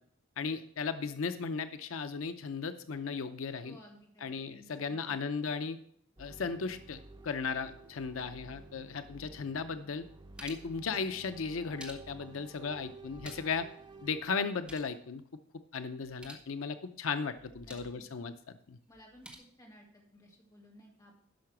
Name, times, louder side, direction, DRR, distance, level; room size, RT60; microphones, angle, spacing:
voice 1, 0.4-3.8 4.2-5.8 6.2-10.0 10.4-13.7 14.0-15.2 15.7-18.8, left 5 dB, 90° left, 10 dB, 0.6 m, -36 dB
voice 2, 3.6-5.6 17.6-18.1 18.9-19.3 19.6-21.1, equal, 20° left, -2 dB, 2.6 m, -57 dB
sound 1, 6.2-14.2, right 2 dB, 20° right, 0.7 m, -52 dB
sound 2, 9.9-10.8 11.5-12.4 13.0-13.7 13.9-14.0 14.4-15.0 16.0-16.5 17.3-18.0 18.9-19.4, right 1 dB, 5° right, 1.5 m, -52 dB
11.5 x 5.8 x 6.0 m, 0.64 s
head